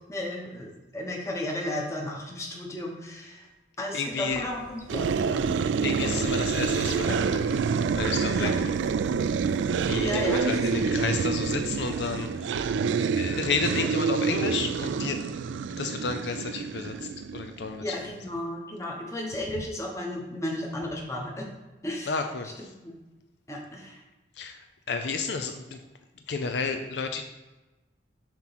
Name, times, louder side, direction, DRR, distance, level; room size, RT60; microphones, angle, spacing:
voice 1, 0.1-3.5 3.8-5.6 6.0-6.1 8.3-8.5 10.0-10.5 10.8-11.2 17.8-21.4 21.8-22.2 22.8-22.9 23.5-24.0, left 1 dB, 15° left, -1 dB, 1.1 m, -34 dB
voice 2, 3.9-4.4 5.8-7.6 7.9-8.7 9.9-15.2 15.8-17.9 22.1-22.5 24.4-25.8 26.3-27.2, left 4 dB, 65° left, 6 dB, 0.5 m, -32 dB
sound 1, 4.3-10.7, right 1 dB, 25° right, 0.8 m, -49 dB
sound 2, 4.9-17.8, right 5 dB, 80° right, 0.3 m, -27 dB
7.3 x 3.1 x 5.8 m, 1.1 s
head